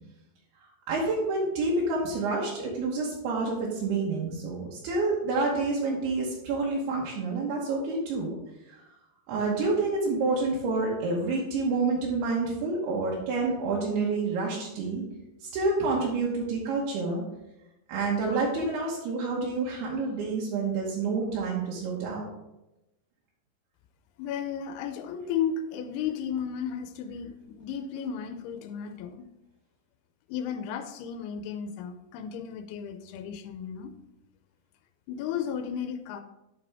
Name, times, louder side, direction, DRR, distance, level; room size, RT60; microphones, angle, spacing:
voice 1, 0.9-8.4 8.7-8.8 9.3-15.0 15.4-17.2 17.9-22.2, right 3 dB, 80° right, -4 dB, 3.2 m, -28 dB
voice 2, 24.2-29.3 30.3-33.9 35.1-36.2, left 7 dB, 85° left, 8 dB, 2.6 m, -34 dB
11.0 x 5.0 x 3.5 m, 0.94 s
omnidirectional pair, 4.6 m